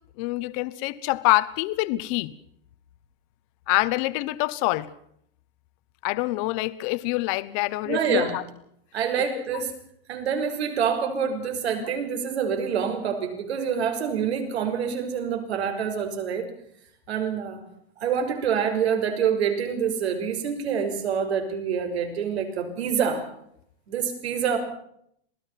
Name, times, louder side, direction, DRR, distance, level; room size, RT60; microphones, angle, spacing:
voice 1, 0.2-2.3 3.7-4.9 6.0-8.4 9.3-9.4, left 20 dB, 30° left, 15 dB, 1.0 m, -25 dB
voice 2, 7.8-8.3 8.9-9.7 10.1-16.5 17.1-17.6 18.0-23.2 23.9-24.6, right 7 dB, 85° right, 6 dB, 6.0 m, -26 dB
27.0 x 19.0 x 5.8 m, 0.70 s
supercardioid pair, 170°, 31 cm